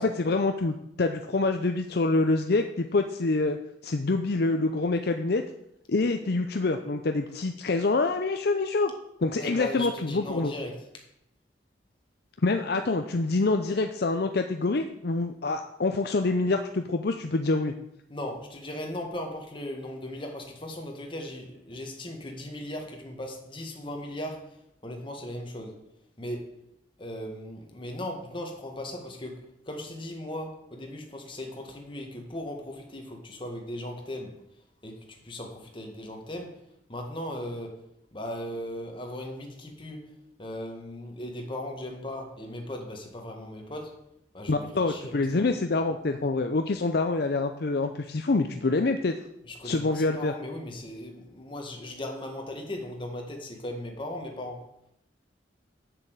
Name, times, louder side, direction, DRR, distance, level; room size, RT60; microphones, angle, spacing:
voice 1, 0.0-3.6 3.8-5.4 5.9-8.9 9.2-10.5 12.4-17.7 44.5-49.1 49.6-50.3, left 3 dB, 55° left, 6 dB, 0.6 m, -26 dB
voice 2, 9.4-10.8 18.1-24.6 24.8-25.8 26.2-26.5 27.0-34.4 34.8-36.6 36.9-37.8 38.1-40.1 40.4-43.9 44.3-45.5 49.5-54.7, left 1 dB, 25° left, 2 dB, 1.8 m, -38 dB
7.3 x 7.0 x 8.2 m, 0.78 s
head